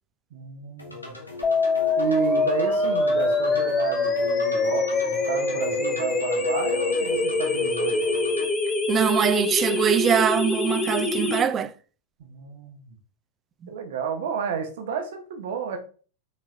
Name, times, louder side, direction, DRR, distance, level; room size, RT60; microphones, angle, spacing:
voice 1, 0.3-1.2 2.0-8.0 12.2-12.9 13.7-15.8, right 6 dB, 55° right, 0.9 m, -31 dB
sound 1, 0.8-8.5, left 2 dB, 85° left, 1.1 m, -36 dB
sound 2, 1.4-11.4, left 3 dB, 20° left, 0.8 m, -24 dB
voice 2, 8.9-11.7, right 8 dB, 25° right, 0.3 m, -22 dB
5.2 x 4.1 x 2.5 m
figure-of-eight pair, 90°, 0 cm